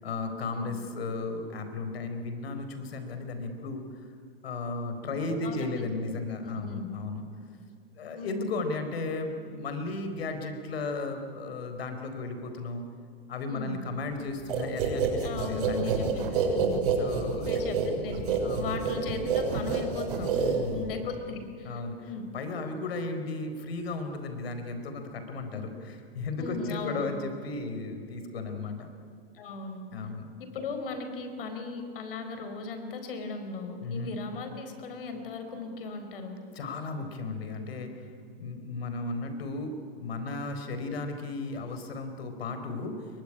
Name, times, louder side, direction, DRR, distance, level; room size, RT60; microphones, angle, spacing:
voice 1, 0.0-3.8 4.4-7.2 7.9-12.8 13.3-16.0 17.0-17.7 18.4-18.7 20.3-20.9 21.6-22.0 22.3-28.8 29.9-30.3 33.8-34.1 36.5-38.1 38.4-43.1, left 3 dB, 90° left, 7 dB, 4.3 m, -35 dB
voice 2, 5.1-5.9 6.4-6.9 8.2-8.5 13.5-13.8 15.2-16.8 17.4-20.3 20.7-22.2 25.5-25.6 26.4-27.1 29.3-29.8 30.4-36.4, left 4 dB, 65° left, 6 dB, 4.6 m, -38 dB
sound 1, 14.5-21.0, right 6 dB, 60° right, 7.2 m, -28 dB
25.5 x 23.0 x 10.0 m, 2.4 s
supercardioid pair, 170°, 30 cm